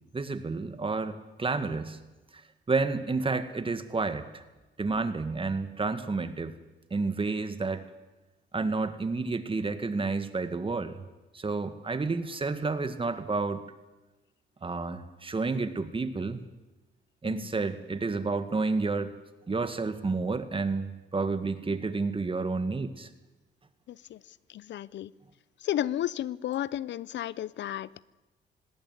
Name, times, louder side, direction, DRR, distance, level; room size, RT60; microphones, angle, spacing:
voice 1, 0.1-2.0 2.7-4.4 4.8-6.5 6.9-7.8 8.5-11.0 11.3-13.6 14.6-16.4 17.2-19.1 19.5-23.1, right 3 dB, 25° right, 10 dB, 2.0 m, -30 dB
voice 2, 23.9-25.1 25.6-28.0, left 12 dB, 65° left, 21 dB, 0.6 m, -33 dB
19.0 x 17.5 x 9.6 m, 1.1 s
cardioid pair, 90°, 20 cm